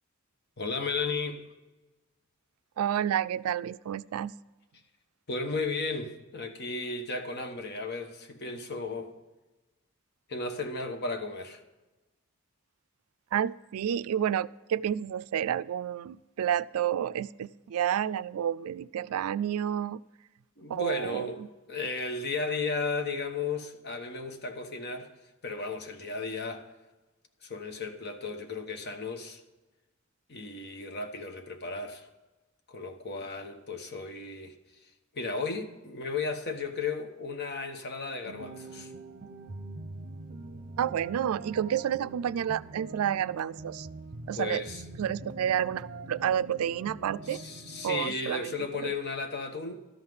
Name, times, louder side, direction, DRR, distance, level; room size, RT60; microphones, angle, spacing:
voice 1, 0.6-1.5 5.3-9.1 10.3-11.6 20.6-25.1 25.4-26.7 27.4-29.4 30.3-32.1 32.7-34.5 35.1-38.9 44.3-44.8 47.2-49.8, left 4 dB, 50° left, 1.2 m, -34 dB
voice 2, 2.8-4.3 13.3-20.0 20.7-21.5 40.8-43.9 44.3-44.6 45.0-47.4 47.8-48.5 48.8-48.9, right 9 dB, 90° right, 0.3 m, -30 dB
sound 1, 38.3-48.0, right 2 dB, 45° right, 0.7 m, -44 dB
13.0 x 5.7 x 7.7 m
head